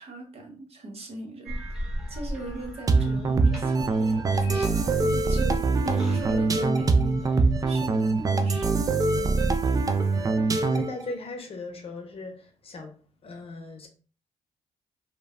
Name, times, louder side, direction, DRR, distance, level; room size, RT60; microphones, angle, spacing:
voice 1, 0.0-1.6 2.1-7.4 7.7-8.7, right 1 dB, 50° right, 0.9 m, -38 dB
sound 1, 1.4-7.7, equal, ahead, 1.1 m, -38 dB
sound 2, 2.9-11.0, right 3 dB, 25° right, 0.4 m, -23 dB
voice 2, 9.1-9.9 10.6-13.9, left 3 dB, 45° left, 0.7 m, -39 dB
3.0 x 2.2 x 2.3 m
supercardioid pair, 65°, 13 cm